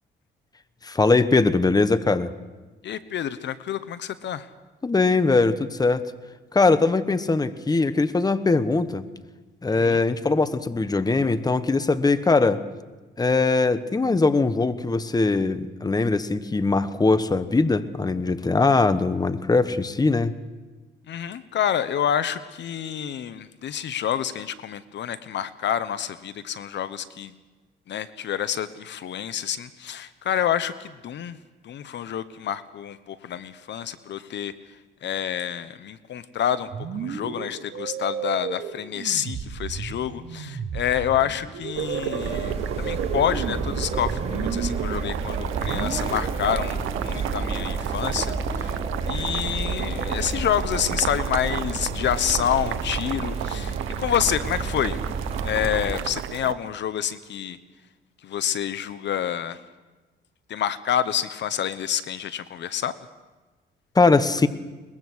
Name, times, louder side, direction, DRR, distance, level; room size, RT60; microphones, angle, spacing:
voice 1, 0.8-2.3 4.8-6.0 6.5-9.1 9.6-12.6 13.2-20.3 63.9-64.5, left 3 dB, 20° left, 13 dB, 1.1 m, -21 dB
voice 2, 2.8-4.5 9.7-10.0 21.1-27.3 27.9-31.4 31.6-34.5 35.0-36.7 36.9-55.0 55.4-57.6 58.2-59.6 60.5-62.9, left 9 dB, 65° left, 14 dB, 0.9 m, -28 dB
sound 1, 36.7-46.7, right 6 dB, 65° right, 3.9 m, -34 dB
Boiling, 41.7-56.5, right 12 dB, 85° right, 0.9 m, -33 dB
sound 2, 42.2-55.9, right 4 dB, 30° right, 3.9 m, -30 dB
22.5 x 21.0 x 6.3 m, 1.2 s
cardioid pair, 90°, 20 cm